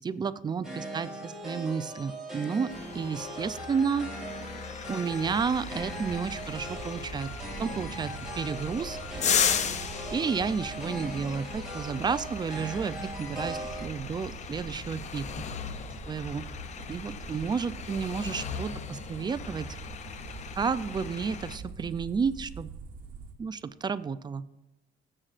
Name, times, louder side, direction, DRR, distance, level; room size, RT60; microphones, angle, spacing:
voice 1, 0.0-4.1 4.9-7.3 7.6-9.0 10.1-15.4 16.1-16.4 16.9-19.7 20.6-22.7 23.4-24.4, right 6 dB, 25° right, 14 dB, 0.4 m, -31 dB
sound 1, 0.6-13.9, right 1 dB, 5° right, 2.7 m, -40 dB
sound 2, 2.7-21.6, left 7 dB, 45° left, 0.6 m, -36 dB
sound 3, 5.1-23.3, right 4 dB, 55° right, 1.2 m, -44 dB
21.5 x 7.5 x 2.5 m, 0.96 s
cardioid pair, 110°, 17 cm